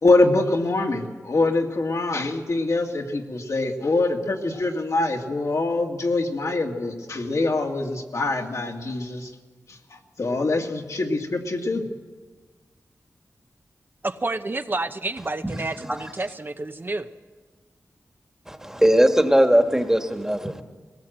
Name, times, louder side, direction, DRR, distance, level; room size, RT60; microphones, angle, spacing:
voice 1, 0.0-9.3 9.7-11.9, left 2 dB, 65° left, 2 dB, 2.1 m, -24 dB
voice 2, 14.0-17.1, right 2 dB, 35° right, 8 dB, 0.8 m, -29 dB
voice 3, 18.5-20.6, equal, 10° right, 6 dB, 1.6 m, -19 dB
20.5 x 18.0 x 7.9 m, 1.4 s
wide cardioid pair, 75°, 6 cm